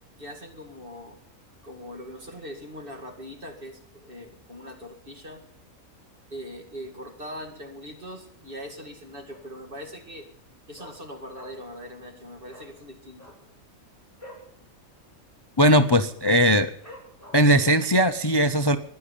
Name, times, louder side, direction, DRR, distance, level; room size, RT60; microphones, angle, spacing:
voice 1, 0.2-1.2 1.6-5.4 6.3-10.3 10.7-13.3, equal, 40° right, 3 dB, 2.4 m, -41 dB
Dog, 9.3-9.7 10.0-10.1 10.4-11.8 12.1-12.2 12.5-12.7 13.1-14.5 14.9-15.0 15.3-15.7 16.1-16.2 16.8-17.6 18.1-18.2, equal, 10° right, 7.9 m, -47 dB
voice 2, 15.6-16.7 17.3-18.8, equal, 35° left, 10 dB, 0.4 m, -19 dB
15.0 x 11.0 x 8.5 m, 0.66 s
omnidirectional pair, 1.5 m